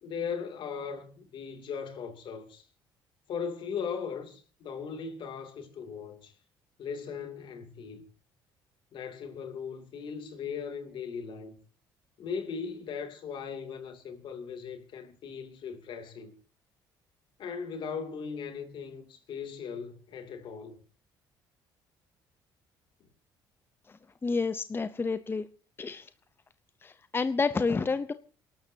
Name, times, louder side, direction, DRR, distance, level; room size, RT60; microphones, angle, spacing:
voice 1, 0.0-2.6 3.3-6.3 6.8-8.0 8.9-11.6 12.2-16.3 17.4-20.8, left 6 dB, 65° left, 2.8 m, -38 dB
voice 2, 24.2-25.5 25.8-26.1 26.8-28.1, left 4 dB, 25° left, 0.7 m, -29 dB
28.0 x 12.0 x 2.8 m
supercardioid pair, 80°, 9 cm